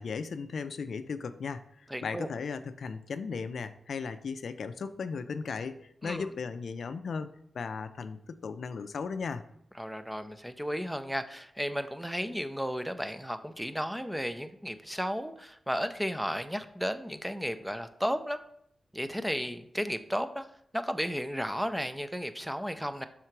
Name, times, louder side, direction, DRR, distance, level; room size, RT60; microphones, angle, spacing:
voice 1, 0.0-7.3 7.5-9.4, left 5 dB, 75° left, 10 dB, 0.3 m, -36 dB
voice 2, 1.9-2.3 6.0-6.3 9.8-18.4 18.9-20.4 20.7-23.0, equal, 5° right, 10 dB, 0.4 m, -34 dB
5.6 x 3.7 x 4.5 m, 0.72 s
wide cardioid pair, 90°, 0 cm